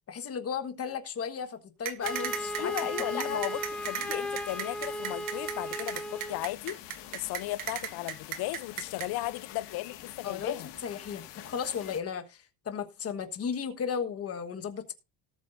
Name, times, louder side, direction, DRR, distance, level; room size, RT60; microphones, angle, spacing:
voice 1, 0.1-2.7 3.1-3.4 10.2-14.9, left 7 dB, 35° left, 1.4 m, -35 dB
sound 1, 1.8-9.1, right 10 dB, 50° right, 1.4 m, -35 dB
sound 2, 2.0-12.0, left 12 dB, 75° left, 1.9 m, -47 dB
Wind instrument woodwind instrument, 2.0-6.4, equal, ahead, 0.7 m, -36 dB
voice 2, 2.6-6.8 7.1-10.7, left 17 dB, 60° left, 0.6 m, -35 dB
18.5 x 7.9 x 2.6 m
cardioid pair, 145°, 42 cm